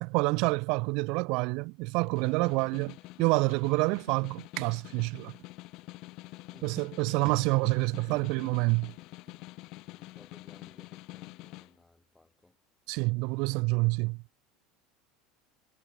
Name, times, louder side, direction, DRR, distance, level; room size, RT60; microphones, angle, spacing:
voice 1, 0.0-5.3 6.6-8.9 12.9-14.2, right 28 dB, 50° right, 0.6 m, -28 dB
Snare drum, 1.9-11.7, left 21 dB, 45° left, 2.2 m, -47 dB
voice 2, 9.8-12.6, left 2 dB, 5° left, 4.7 m, -60 dB
cardioid pair, 175°, 0 cm